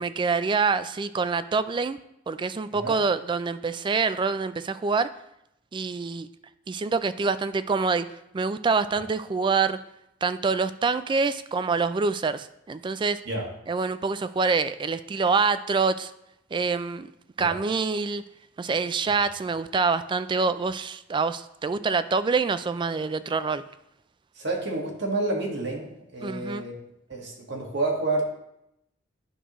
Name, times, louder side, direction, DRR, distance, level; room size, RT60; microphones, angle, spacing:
voice 1, 0.0-2.0 2.3-5.1 5.7-6.3 6.7-8.1 8.3-9.8 10.2-13.2 13.7-16.1 16.5-17.1 17.4-18.2 18.6-23.6 26.2-26.6, right 4 dB, 25° right, 13 dB, 0.3 m, -26 dB
voice 2, 24.3-26.7 27.1-28.2, right 2 dB, 60° right, 0 dB, 1.7 m, -29 dB
10.0 x 6.2 x 3.0 m, 0.81 s
head